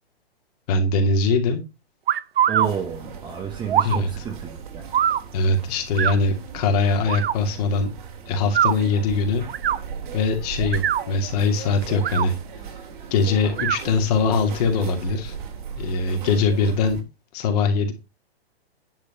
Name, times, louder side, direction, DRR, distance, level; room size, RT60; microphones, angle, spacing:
voice 1, 0.7-1.6 3.8-4.1 5.3-7.9 8.3-9.4 10.1-12.3 13.1-15.3 15.8-17.0 17.3-17.9, left 3 dB, 40° left, 5 dB, 2.6 m, -22 dB
sound 1, 2.1-2.7 3.7-4.0 4.9-5.2 6.0-6.2 7.1-7.3 8.4-8.7 9.5-9.8 10.6-11.1 11.9-12.3 13.5-13.8, right 10 dB, 65° right, 0.8 m, -22 dB
voice 2, 2.5-4.8, right 8 dB, 15° right, 4 dB, 1.3 m, -30 dB
sound 2, 2.6-17.0, right 7 dB, 50° right, 2.5 m, -38 dB
10.5 x 5.3 x 5.5 m, 0.26 s
hypercardioid pair, 145°, 32 cm